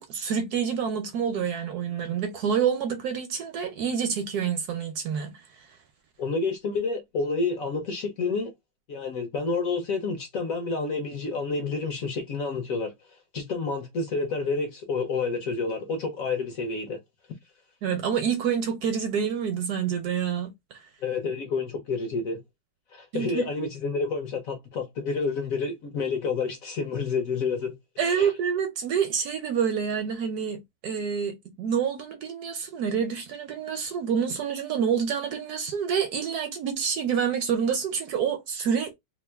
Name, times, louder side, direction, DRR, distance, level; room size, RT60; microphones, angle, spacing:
voice 1, 0.0-5.3 17.8-20.8 23.1-23.5 28.0-38.9, right 7 dB, 70° right, 1.0 m, -27 dB
voice 2, 6.2-8.5 8.9-17.0 21.0-22.4 22.9-27.8 28.0-28.3, left 4 dB, 65° left, 0.9 m, -29 dB
2.9 x 2.4 x 3.2 m
omnidirectional pair, 2.0 m